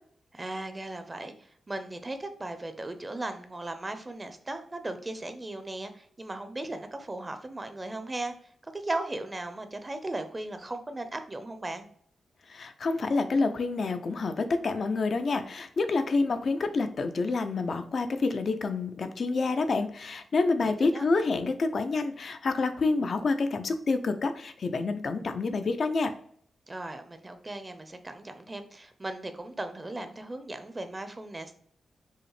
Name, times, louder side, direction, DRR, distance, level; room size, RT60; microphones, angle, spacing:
voice 1, 0.3-8.3 8.6-11.9 20.6-21.0 26.7-31.5, right 2 dB, 25° right, 8 dB, 0.6 m, -37 dB
voice 2, 12.5-26.1, left 3 dB, 60° left, 9 dB, 0.5 m, -28 dB
5.4 x 2.1 x 3.1 m, 0.63 s
cardioid pair, 60°, 0 cm